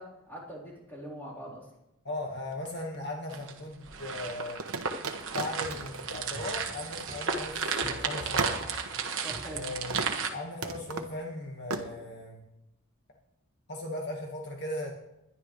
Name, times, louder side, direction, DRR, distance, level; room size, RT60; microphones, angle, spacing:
voice 1, 0.0-1.7 9.2-9.6, right 1 dB, 10° left, -7 dB, 4.1 m, -43 dB
voice 2, 2.0-4.6 5.3-8.6 9.5-10.0 10.3-12.4 13.7-14.9, left 1 dB, 50° left, -1 dB, 1.8 m, -38 dB
sound 1, 2.5-3.4 4.6-7.6 7.8-7.9 8.4-9.6 9.9-10.2 10.6-11.2 11.7-11.9, right 4 dB, 80° right, 1.1 m, -36 dB
sound 2, 3.3-10.3, right 5 dB, 60° right, 1.3 m, -34 dB
sound 3, 5.6-10.1 10.4-10.5, right 1 dB, 35° right, 5.1 m, -47 dB
21.0 x 11.0 x 3.3 m, 0.90 s
head